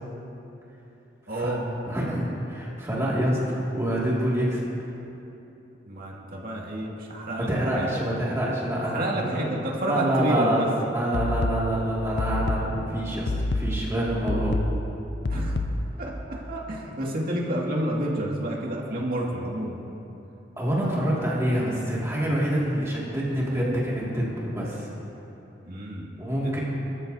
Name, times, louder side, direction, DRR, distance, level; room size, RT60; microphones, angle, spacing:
voice 1, 1.3-1.6 5.9-7.9 8.8-10.7 14.3-14.5 15.3-15.6 16.0-19.8 25.6-26.6, right 1 dB, 55° right, -3 dB, 2.1 m, -30 dB
voice 2, 1.9-4.6 7.4-9.4 9.8-10.7 10.9-14.6 20.6-24.9 26.2-26.6, right 1 dB, 15° right, -6 dB, 2.1 m, -26 dB
sound 1, 11.1-16.1, left 1 dB, 75° left, 0.6 m, -28 dB
22.5 x 13.5 x 2.7 m, 3.0 s
head